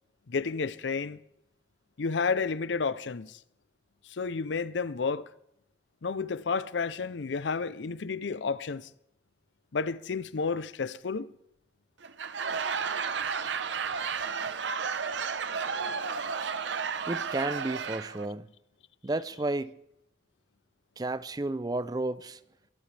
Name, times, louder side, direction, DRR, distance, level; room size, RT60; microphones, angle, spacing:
voice 1, 0.3-1.2 2.0-3.4 4.1-5.3 6.0-8.9 9.7-11.3, left 5 dB, 80° left, 0.6 m, -31 dB
Laughter / Crowd, 12.0-18.3, right 6 dB, 85° right, 0.8 m, -32 dB
voice 2, 17.1-18.5 19.0-19.7 21.0-22.4, right 2 dB, 20° right, 0.4 m, -32 dB
23.0 x 13.5 x 3.4 m
head